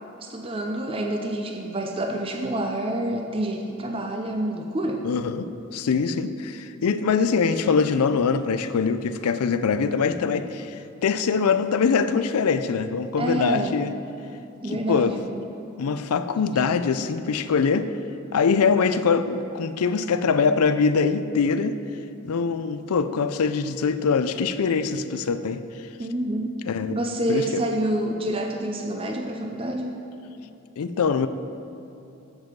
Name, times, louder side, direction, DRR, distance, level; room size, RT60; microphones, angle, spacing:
voice 1, 0.2-5.1 13.2-13.8 14.6-15.2 26.0-26.6 26.9-29.9, right 1 dB, 25° right, 2 dB, 0.5 m, -27 dB
voice 2, 5.0-10.8 11.0-13.9 14.7-15.2 15.8-17.9 18.3-21.8 22.2-25.6 26.7-27.0 27.3-27.6 30.8-31.3, left 5 dB, 85° left, 11 dB, 0.4 m, -23 dB
7.9 x 7.6 x 5.1 m, 2.9 s
head